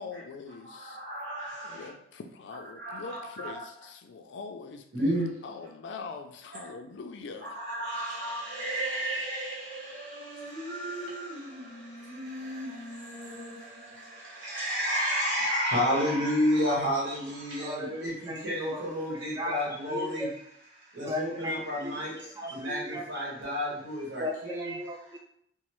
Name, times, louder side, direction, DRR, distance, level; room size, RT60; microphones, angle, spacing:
voice 1, 0.0-1.0 1.6-7.6, left 4 dB, 70° left, 6 dB, 0.4 m, -43 dB
voice 2, 1.1-1.6 2.8-3.5 4.9-5.3 7.7-9.6 10.3-11.6 12.1-12.7 13.1-13.5 14.4-18.1 18.4-20.2 21.0-22.1 22.5-24.7, equal, 70° right, -6 dB, 1.2 m, -31 dB
voice 3, 17.6-19.0 19.4-20.3 21.0-22.0 22.4-23.1 24.2-25.2, left 1 dB, 20° right, 0 dB, 0.4 m, -36 dB
3.0 x 2.0 x 3.0 m, 0.70 s
head